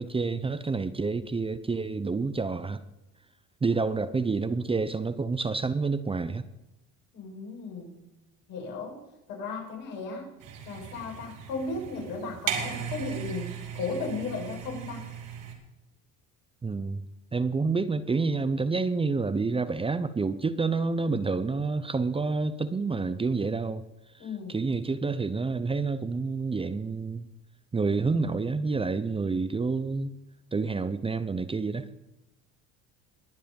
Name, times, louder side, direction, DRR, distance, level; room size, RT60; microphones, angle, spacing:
voice 1, 0.0-2.8 3.6-6.4 16.6-17.0 17.3-23.8 24.5-27.3 27.7-30.2 30.5-31.8, right 4 dB, 15° right, 0.7 m, -28 dB
voice 2, 7.1-8.0 8.5-9.0 9.3-10.3 10.6-15.1 24.2-24.6, left 3 dB, 75° left, 5.9 m, -35 dB
sound 1, 10.4-15.5, right 8 dB, 75° right, 3.2 m, -37 dB
21.5 x 7.5 x 5.4 m
supercardioid pair, 95°, 32 cm